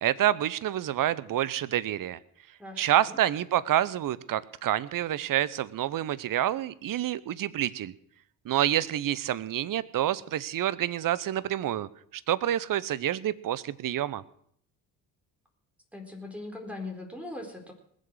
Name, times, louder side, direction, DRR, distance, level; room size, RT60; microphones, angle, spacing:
voice 1, 0.0-2.2 2.8-7.9 8.4-11.9 12.3-14.2, right 12 dB, 40° right, 18 dB, 0.9 m, -28 dB
voice 2, 2.6-3.2 15.9-17.7, left 2 dB, 5° right, 1 dB, 4.2 m, -40 dB
20.5 x 7.5 x 6.4 m, 0.66 s
hypercardioid pair, 50°, 49 cm